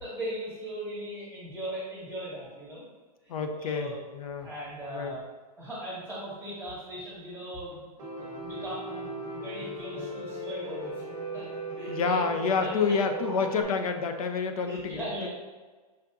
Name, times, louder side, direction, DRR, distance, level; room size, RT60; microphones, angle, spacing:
voice 1, 0.0-2.8 3.2-4.0 4.4-5.2 5.6-11.0 11.3-12.3 12.6-13.6 14.6-15.3, right 1 dB, ahead, -10 dB, 1.2 m, -39 dB
voice 2, 3.3-4.5 4.9-5.2 11.9-15.3, left 5 dB, 60° left, 7 dB, 0.6 m, -29 dB
Piano, 8.0-13.6, right 2 dB, 15° right, 0.8 m, -37 dB
5.7 x 2.6 x 3.5 m, 1.4 s
supercardioid pair, 175°, 21 cm